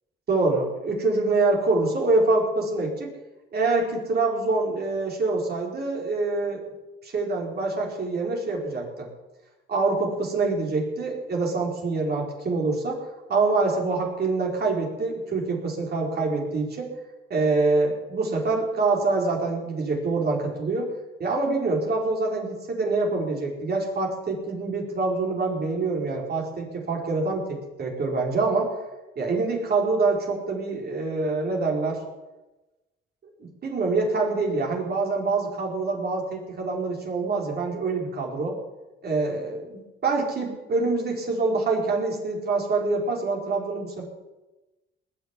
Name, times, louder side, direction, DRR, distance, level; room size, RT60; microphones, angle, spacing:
voice 1, 0.3-3.1 3.5-6.6 7.0-9.1 9.7-13.0 13.3-16.9 17.3-20.9 21.2-28.7 29.2-32.0 33.6-38.6 39.0-44.0, right 3 dB, 55° right, -1 dB, 5.0 m, -25 dB
19.5 x 6.9 x 9.9 m, 1.1 s
cardioid pair, 90°, 20 cm